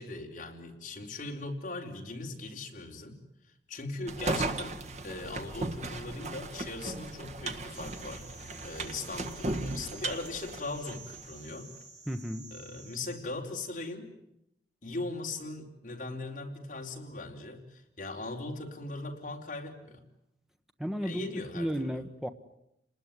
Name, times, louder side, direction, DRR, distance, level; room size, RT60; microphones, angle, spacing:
voice 1, 0.0-3.2 3.7-4.8 5.0-8.3 8.6-11.7 12.5-14.1 14.8-20.0 21.0-22.0, left 2 dB, 45° left, 1 dB, 4.2 m, -39 dB
sound 1, 4.1-11.3, right 2 dB, 40° right, 1.5 m, -36 dB
sound 2, 7.7-13.2, right 4 dB, 20° right, 4.9 m, -51 dB
voice 2, 12.1-12.5 20.8-21.3 21.5-22.3, equal, ahead, 7 dB, 1.3 m, -33 dB
30.0 x 20.0 x 9.8 m, 0.81 s
head